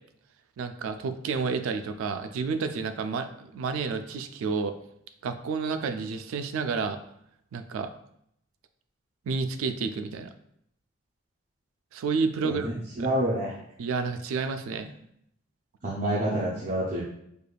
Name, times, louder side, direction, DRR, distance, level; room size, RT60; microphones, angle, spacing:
voice 1, 0.6-4.8 5.2-7.0 7.5-7.9 9.3-10.3 11.9-12.7 13.0-13.1 13.8-14.9, right 5 dB, 90° right, 9 dB, 0.3 m, -30 dB
voice 2, 13.0-13.5 15.8-17.0, right 1 dB, 40° right, -7 dB, 0.5 m, -27 dB
4.9 x 2.3 x 2.2 m, 0.73 s
head